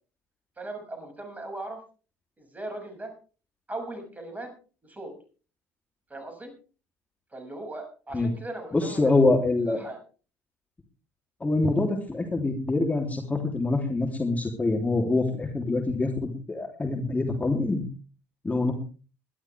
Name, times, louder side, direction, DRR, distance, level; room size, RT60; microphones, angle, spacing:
voice 1, 0.6-1.8 2.4-3.1 3.7-4.5 4.8-5.1 6.1-6.5 7.3-9.3 9.7-10.0, right 2 dB, 20° right, 5 dB, 6.5 m, -38 dB
voice 2, 8.7-9.8 11.4-17.8 18.4-18.7, left 2 dB, 15° left, 2 dB, 3.2 m, -25 dB
21.0 x 12.5 x 3.4 m, 0.37 s
hypercardioid pair, 60°, 9 cm